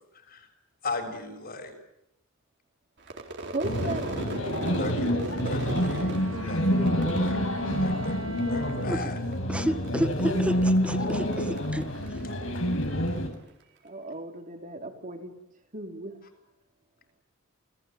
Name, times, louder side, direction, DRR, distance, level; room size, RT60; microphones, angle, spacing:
voice 1, 0.1-0.5 0.8-1.7 4.8-5.1 5.4-7.4 7.8-8.2 8.5-9.2, left 3 dB, 45° left, 4 dB, 6.9 m, -37 dB
Crowd / Fireworks, 3.0-8.4 8.7-9.3 9.6-13.2, right 2 dB, 55° right, 4.1 m, -39 dB
voice 2, 3.5-6.1 13.8-15.3 15.7-16.2, right 2 dB, 40° right, 4 dB, 3.8 m, -37 dB
sound 1, 3.6-13.3, equal, 65° left, 5.9 m, -27 dB
Wind instrument woodwind instrument, 5.6-9.1, right 1 dB, 80° right, 4.2 m, -39 dB
voice 3, 9.5-11.9, equal, 5° right, 10 dB, 1.6 m, -30 dB
29.5 x 21.0 x 9.3 m, 0.88 s
head